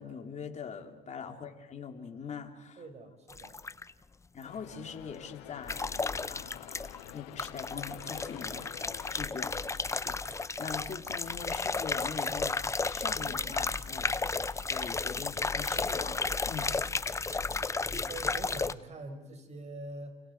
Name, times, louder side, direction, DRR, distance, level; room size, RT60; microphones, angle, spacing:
voice 1, 0.0-2.8 4.3-5.9 6.3-6.8 7.1-8.6 9.1-9.6 10.0-12.6 12.8-16.7 17.2-17.6, left 6 dB, 35° left, 3 dB, 3.2 m, -42 dB
voice 2, 2.8-3.6 17.4-20.2, right 2 dB, 35° right, 7 dB, 4.9 m, -45 dB
sound 1, 3.3-3.9 5.7-7.1 7.4-18.7, left 4 dB, 15° left, 0.7 m, -33 dB
sound 2, 4.4-9.3, left 18 dB, 85° left, 0.7 m, -49 dB
29.5 x 29.0 x 4.7 m, 1.2 s
supercardioid pair, 95°, 20 cm